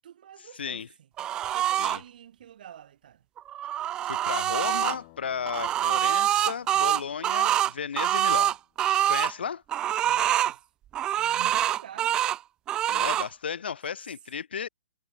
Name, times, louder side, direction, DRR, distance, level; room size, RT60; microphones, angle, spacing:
voice 1, 0.0-1.1 1.5-3.3 9.4-9.6 10.0-10.7 11.2-12.2, right 10 dB, 55° right, 7.6 m, -47 dB
voice 2, 0.6-0.9 1.8-2.0 4.0-8.6 9.1-9.6 12.9-14.7, left 7 dB, 90° left, 1.8 m, -34 dB
sound 1, 1.2-2.0 3.4-5.0 5.5-9.3 9.7-10.5 10.9-12.4 12.7-13.3, right 12 dB, 15° right, 0.4 m, -25 dB
sound 2, 4.6-8.4, left 29 dB, 30° left, 4.2 m, -56 dB
hypercardioid pair, 165°, 5 cm